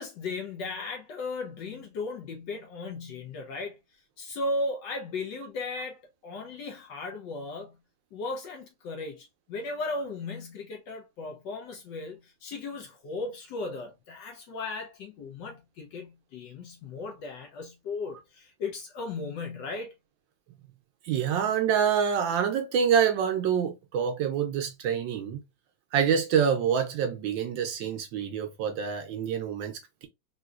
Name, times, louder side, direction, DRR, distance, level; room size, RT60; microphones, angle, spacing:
voice 1, 0.0-3.8 4.2-7.8 8.1-19.9, left 3 dB, 70° left, 1.2 m, -36 dB
voice 2, 21.0-25.4 25.9-30.1, right 7 dB, 75° right, 1.2 m, -26 dB
3.7 x 2.6 x 2.3 m
omnidirectional pair, 2.2 m